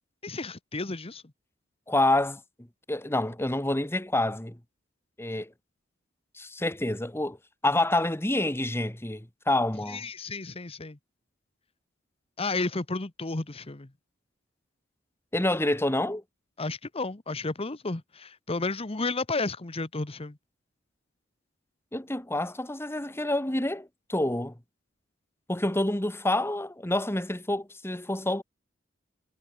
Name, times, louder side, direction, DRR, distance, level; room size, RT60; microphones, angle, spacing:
voice 1, 0.2-1.2 9.9-11.0 12.4-13.9 16.6-20.4, left 3 dB, 30° left, 1.1 m, -32 dB
voice 2, 1.9-2.4 2.9-4.6 5.2-5.5 6.4-7.4 7.6-10.0 15.3-16.2 21.9-24.5 25.5-28.4, left 1 dB, 10° left, 1.9 m, -27 dB
head